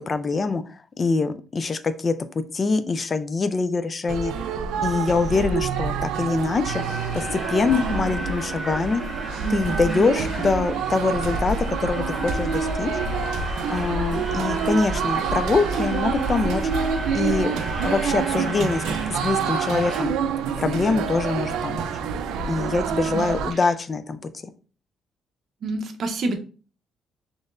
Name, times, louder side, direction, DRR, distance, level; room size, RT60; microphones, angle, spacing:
voice 1, 0.1-4.3 4.8-6.8 7.1-9.0 9.5-12.9 13.2-13.3 13.7-17.6 17.8-20.2 20.6-21.8 22.5-24.3, left 4 dB, 35° left, 12 dB, 0.4 m, -24 dB
sound 1, 4.1-23.5, right 6 dB, 90° right, 0.4 m, -27 dB
sound 2, 6.6-20.0, equal, 5° left, 1.4 m, -35 dB
voice 2, 25.6-26.4, right 2 dB, 60° right, 5 dB, 0.7 m, -27 dB
4.1 x 3.1 x 2.5 m, 0.37 s
cardioid pair, 90°, 0 cm